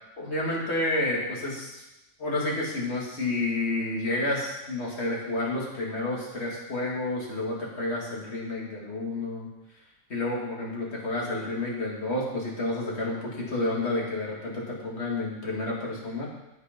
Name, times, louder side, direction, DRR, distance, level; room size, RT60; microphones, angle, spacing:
voice 1, 0.2-1.8 2.2-9.5 10.1-16.3, left 2 dB, 50° left, -4 dB, 2.7 m, -30 dB
9.7 x 8.4 x 5.2 m, 0.97 s
omnidirectional pair, 1.4 m